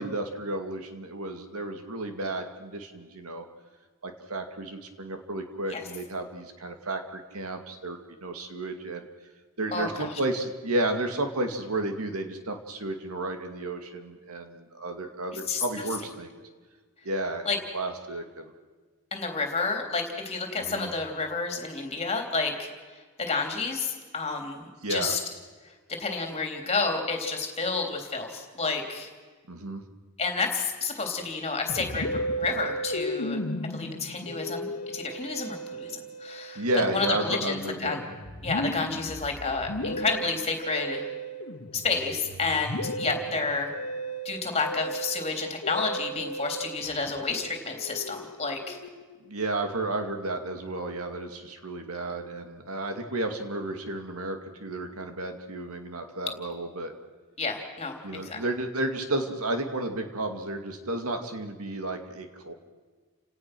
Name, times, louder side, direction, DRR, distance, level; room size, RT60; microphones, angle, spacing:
voice 1, 0.0-3.4 4.0-9.1 9.6-16.4 17.0-18.5 20.6-20.9 24.8-25.2 29.5-29.8 36.6-38.0 49.2-56.9 58.0-62.5, right 2 dB, 80° right, 6 dB, 2.4 m, -32 dB
voice 2, 9.7-10.1 15.5-15.6 17.5-17.6 19.1-22.7 23.2-25.2 26.0-29.1 30.2-32.1 32.4-33.4 33.7-36.6 36.9-38.0 38.4-41.1 41.7-43.7 44.3-48.8 57.4-58.4, left 4 dB, 30° left, 3 dB, 3.4 m, -30 dB
Musical instrument, 31.7-49.3, right 1 dB, 80° left, 1.5 m, -35 dB
30.0 x 18.0 x 6.2 m, 1.4 s
head